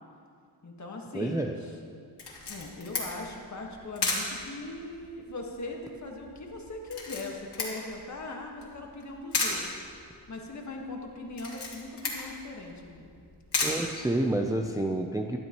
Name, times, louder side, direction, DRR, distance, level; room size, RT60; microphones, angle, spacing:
voice 1, 0.6-1.7 2.4-9.8 10.3-13.1, left 2 dB, 40° left, 1 dB, 1.6 m, -40 dB
voice 2, 1.1-1.6 13.6-15.4, right 1 dB, 10° right, 3 dB, 0.5 m, -29 dB
Camera, 2.2-14.7, left 3 dB, 65° left, 2.3 m, -36 dB
12.0 x 12.0 x 3.0 m, 2.3 s
cardioid pair, 80°, 42 cm